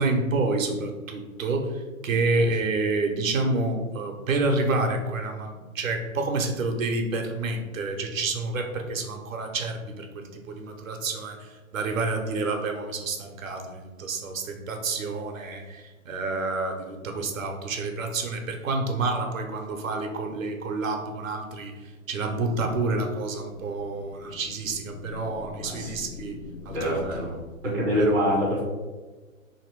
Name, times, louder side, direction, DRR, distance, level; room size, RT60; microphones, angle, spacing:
voice 1, 0.0-21.7 22.1-26.4 26.6-27.2 27.6-28.1, right 3 dB, 70° right, 3 dB, 0.9 m, -29 dB
sound 1, 23.1-27.3, left 4 dB, 85° left, 0.6 m, -44 dB
voice 2, 25.6-26.0 26.7-27.4 27.7-28.6, equal, 5° right, -10 dB, 0.4 m, -25 dB
3.0 x 2.9 x 4.5 m, 1.3 s
figure-of-eight pair, 125°, 41 cm